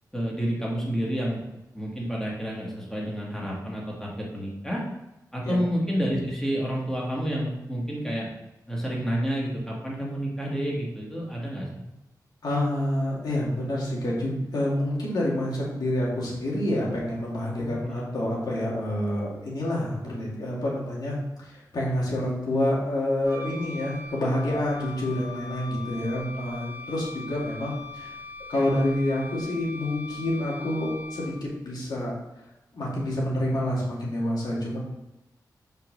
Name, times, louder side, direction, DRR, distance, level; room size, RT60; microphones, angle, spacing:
voice 1, 0.1-1.4 1.7-4.8 5.3-8.3 8.7-11.7 17.6-18.0, equal, 5° left, -4 dB, 1.9 m, -29 dB
voice 2, 12.4-28.1 28.5-32.1 32.7-34.8, left 1 dB, 75° left, -5 dB, 2.5 m, -28 dB
Wind instrument woodwind instrument, 23.2-31.6, left 3 dB, 35° right, 1.0 m, -41 dB
5.2 x 5.0 x 6.3 m, 0.95 s
wide cardioid pair, 165°, 7 cm